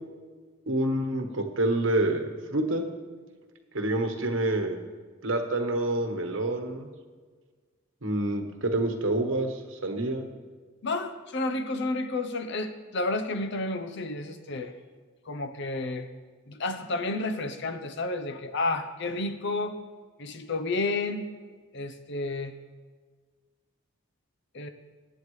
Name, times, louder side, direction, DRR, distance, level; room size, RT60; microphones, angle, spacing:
voice 1, 0.7-2.9 3.7-4.8 5.2-6.9 8.0-9.5 9.8-10.3, right 1 dB, 65° right, 4 dB, 1.2 m, -27 dB
voice 2, 10.8-14.7 15.3-16.1 16.5-19.8 20.2-21.3 21.7-22.5 24.5-24.7, left 2 dB, 60° left, 9 dB, 0.8 m, -31 dB
19.0 x 8.7 x 3.2 m, 1.5 s
head